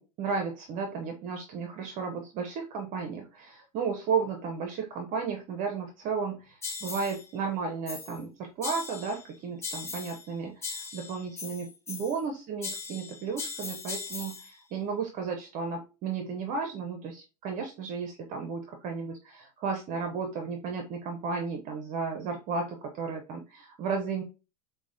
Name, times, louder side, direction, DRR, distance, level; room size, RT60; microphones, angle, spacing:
voice 1, 0.0-24.2, right 5 dB, 45° right, 4 dB, 0.6 m, -34 dB
sound 1, 6.6-7.3 7.9-8.2 8.6-9.3 9.6-10.3 10.6-12.3 12.6-14.5, left 4 dB, 15° left, 0.5 m, -39 dB
4.6 x 2.1 x 2.6 m, 0.31 s
hypercardioid pair, 115°, 19 cm